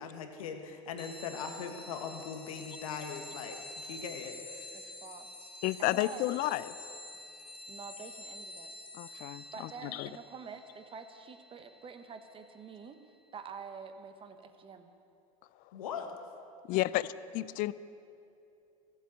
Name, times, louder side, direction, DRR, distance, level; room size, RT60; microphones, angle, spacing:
voice 1, 0.0-4.8 15.7-16.2, left 6 dB, 80° left, 5 dB, 1.4 m, -41 dB
sound 1, 1.0-13.1, left 2 dB, 30° left, 1.3 m, -48 dB
voice 2, 4.7-5.3 5.8-6.4 7.7-8.7 9.5-13.0 13.3-14.9, right 6 dB, 30° right, 8 dB, 1.3 m, -47 dB
voice 3, 5.6-6.7 8.9-10.1 16.7-17.0 17.3-17.7, left 17 dB, 55° left, 17 dB, 0.5 m, -31 dB
15.0 x 8.0 x 8.2 m, 2.7 s
hypercardioid pair, 90°, 17 cm